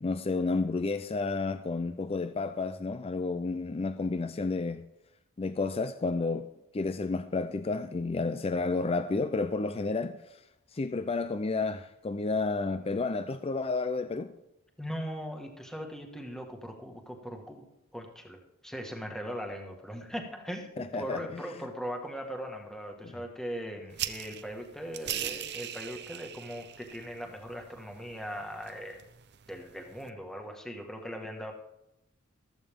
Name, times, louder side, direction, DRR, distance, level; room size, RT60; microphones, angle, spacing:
voice 1, 0.0-4.8 5.4-6.5 6.7-10.2 10.7-14.3 20.8-21.4 23.0-23.1, left 3 dB, 25° left, 0.4 m, -31 dB
voice 2, 14.8-17.7 17.9-29.0 29.5-31.5, equal, ahead, 1.7 m, -39 dB
sound 1, 23.9-30.1, right 11 dB, 50° right, 0.8 m, -41 dB
14.5 x 14.0 x 3.7 m
head